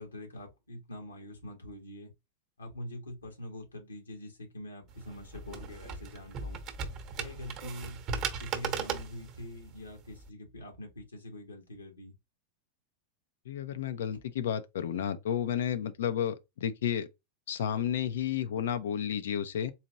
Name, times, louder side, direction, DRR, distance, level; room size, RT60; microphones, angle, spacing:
voice 1, 0.0-2.1 2.6-6.6 7.2-8.0 8.4-12.1 14.1-14.2, left 1 dB, 75° left, 1.6 m, -44 dB
sound 1, 4.9-10.3, right 6 dB, 35° right, 1.0 m, -38 dB
voice 2, 13.5-17.1 17.5-19.7, left 9 dB, 60° left, 0.6 m, -32 dB
4.1 x 3.0 x 2.5 m
figure-of-eight pair, 90°, 0 cm